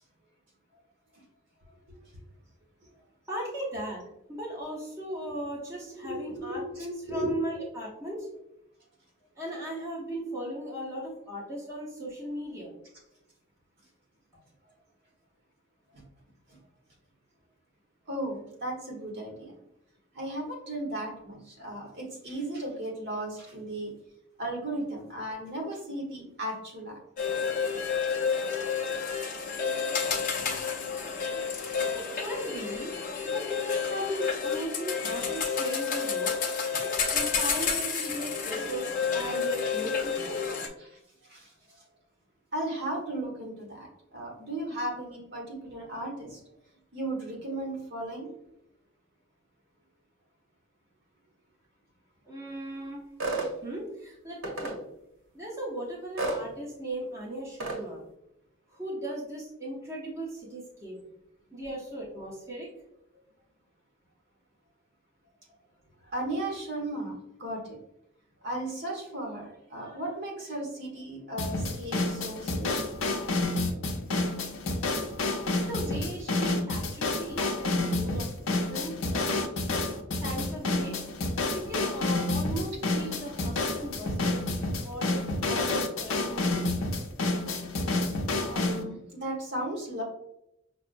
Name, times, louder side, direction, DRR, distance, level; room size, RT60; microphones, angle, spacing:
voice 1, 3.3-4.0 4.3-8.3 9.3-12.7 31.9-32.9 33.2-36.3 36.8-40.4 52.2-53.0 53.6-54.8 55.3-58.0 58.7-61.0 61.5-62.7 75.4-79.5 80.2-81.0 81.5-84.4 84.8-86.6, right 1 dB, 15° right, -5 dB, 0.8 m, -37 dB
voice 2, 5.9-6.8 7.0-7.4 15.9-16.0 16.5-16.6 18.1-19.5 20.1-23.9 24.4-27.0 40.8-41.9 42.5-46.4 46.9-48.3 66.0-67.8 68.4-72.9 88.5-90.0, right 1 dB, 55° right, -2 dB, 1.2 m, -36 dB
sound 1, 27.2-40.7, left 6 dB, 45° left, 0.6 m, -30 dB
sound 2, 53.2-53.5 54.4-54.7 56.2-56.4 57.6-57.8, right 3 dB, 85° right, 0.8 m, -30 dB
sound 3, 71.4-88.8, left 2 dB, 85° left, 0.6 m, -29 dB
5.8 x 2.0 x 2.5 m, 0.82 s
head